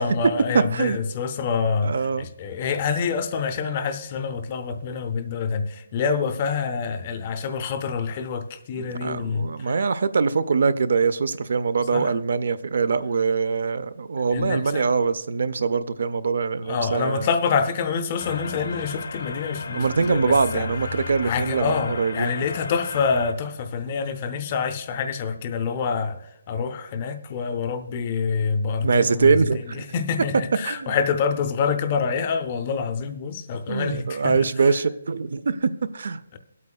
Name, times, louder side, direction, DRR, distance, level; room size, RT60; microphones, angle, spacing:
voice 1, 0.0-9.9 11.9-12.1 14.3-14.9 16.6-20.7 21.2-29.4 29.7-34.5, left 5 dB, 20° left, 0.4 m, -26 dB
voice 2, 0.5-1.0 1.8-2.3 9.0-17.3 19.6-22.3 28.8-29.9 30.6-30.9 33.7-36.2, right 5 dB, 50° right, 0.4 m, -23 dB
sound 1, 18.2-23.3, left 5 dB, 65° left, 0.6 m, -35 dB
23.0 x 8.4 x 2.3 m
hypercardioid pair, 180°, 0 cm